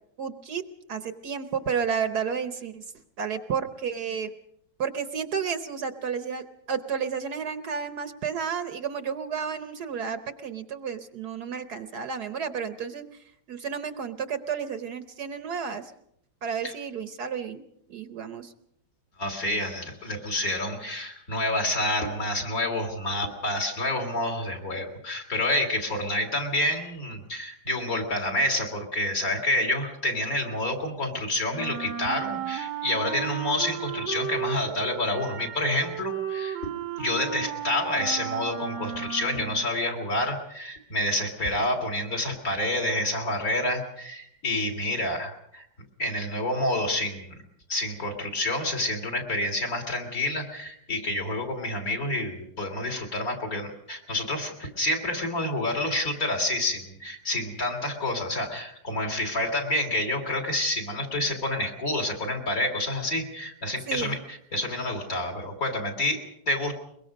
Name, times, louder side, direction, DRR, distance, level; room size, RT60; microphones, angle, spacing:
voice 1, 0.2-0.6 0.9-2.8 3.2-4.3 4.8-13.0 13.5-15.9 16.4-17.6 17.9-18.5 63.9-64.2, right 6 dB, 60° right, 10 dB, 1.4 m, -31 dB
voice 2, 19.2-36.7 37.0-45.6 46.0-47.4 47.7-66.7, left 1 dB, 50° left, 1 dB, 3.5 m, -28 dB
Wind instrument woodwind instrument, 31.5-39.7, right 8 dB, 85° right, 1.9 m, -34 dB
23.0 x 22.5 x 5.2 m, 0.73 s
omnidirectional pair, 2.0 m